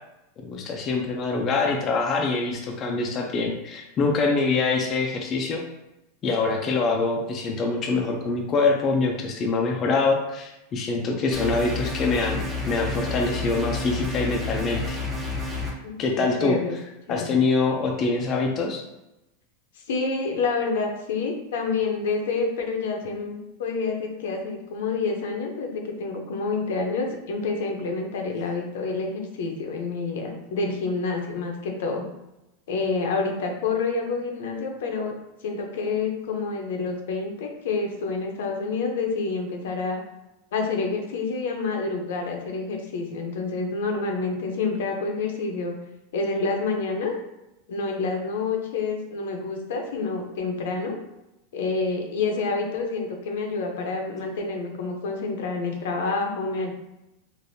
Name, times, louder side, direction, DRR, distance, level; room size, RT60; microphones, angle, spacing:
voice 1, 0.4-5.6 6.2-15.0 16.0-16.6 17.1-18.8, left 3 dB, 30° left, 1 dB, 0.4 m, -24 dB
sound 1, 11.3-15.7, left 3 dB, 10° right, 0.7 m, -30 dB
voice 2, 15.8-16.7 17.1-17.4 19.9-32.0 32.7-35.1 35.4-40.0 40.5-45.7 46.1-47.1 47.7-51.0 51.5-56.7, left 4 dB, 75° left, 2 dB, 0.7 m, -28 dB
3.3 x 2.5 x 2.6 m, 0.93 s
supercardioid pair, 135°, 0 cm